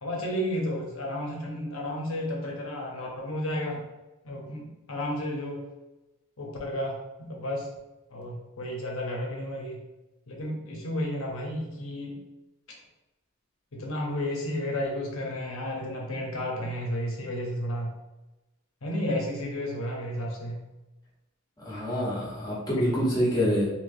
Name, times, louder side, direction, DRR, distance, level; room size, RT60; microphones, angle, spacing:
voice 1, 0.0-3.8 4.2-5.6 6.4-7.7 8.1-9.8 10.3-12.2 13.7-17.9 18.8-20.6, left 1 dB, 80° left, -1 dB, 0.9 m, -32 dB
voice 2, 21.6-23.7, equal, 20° left, -6 dB, 1.1 m, -26 dB
3.3 x 2.9 x 2.7 m, 1.0 s
head